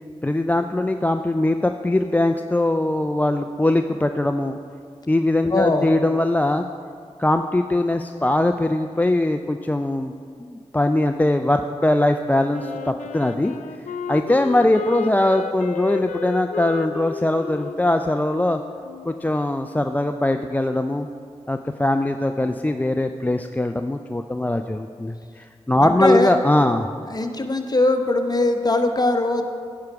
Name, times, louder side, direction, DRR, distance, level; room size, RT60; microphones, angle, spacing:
voice 1, 0.2-4.6 5.1-6.6 7.2-10.1 10.4-13.5 14.1-18.6 19.1-21.1 21.5-27.0, left 1 dB, 15° left, 6 dB, 0.4 m, -21 dB
voice 2, 5.5-5.9 25.8-26.4 27.1-29.4, left 2 dB, 35° left, 6 dB, 0.9 m, -21 dB
Wind instrument woodwind instrument, 12.5-19.3, left 7 dB, 80° left, 0.4 m, -33 dB
9.6 x 4.7 x 5.9 m, 2.2 s
cardioid pair, 40°, 12 cm